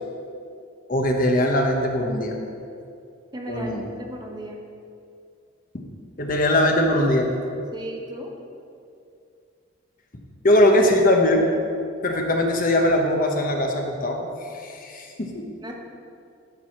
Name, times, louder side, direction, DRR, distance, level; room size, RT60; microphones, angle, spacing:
voice 1, 0.9-2.3 3.5-3.9 6.2-7.3 10.4-11.4 12.0-15.4, left 1 dB, 40° left, 2 dB, 1.0 m, -21 dB
voice 2, 3.3-4.6 7.7-8.3 15.6-15.7, equal, 20° right, 1 dB, 0.9 m, -35 dB
11.5 x 4.8 x 5.8 m, 2.4 s
head